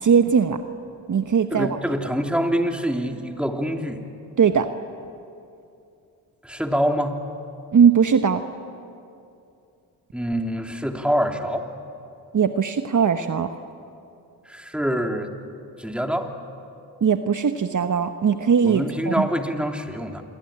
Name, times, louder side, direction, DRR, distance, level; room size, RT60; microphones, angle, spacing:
voice 1, 0.0-0.6 1.1-1.8 4.4-4.7 7.7-8.4 12.3-13.5 17.0-19.3, right 7 dB, 45° right, 8 dB, 1.2 m, -19 dB
voice 2, 1.5-4.0 6.4-7.2 10.1-11.7 14.5-15.3 15.8-16.3 18.6-20.2, equal, ahead, 3 dB, 3.1 m, -25 dB
27.5 x 22.0 x 8.9 m, 2.6 s
supercardioid pair, 50°, 43 cm